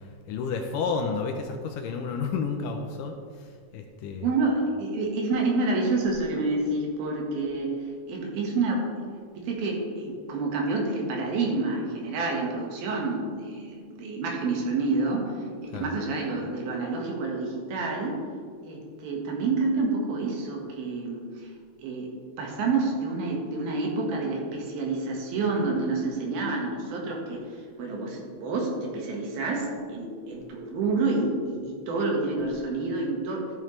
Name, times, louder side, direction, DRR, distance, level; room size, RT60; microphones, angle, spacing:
voice 1, 0.3-3.2 3.7-4.3 15.7-15.9, left 5 dB, 80° left, 4 dB, 2.1 m, -30 dB
voice 2, 4.2-7.7 8.1-9.0 9.4-15.3 15.6-18.2 18.6-21.5 21.8-22.1 22.4-33.5, right 3 dB, 85° right, -1 dB, 3.4 m, -28 dB
13.5 x 7.3 x 3.2 m, 2.1 s
omnidirectional pair, 4.2 m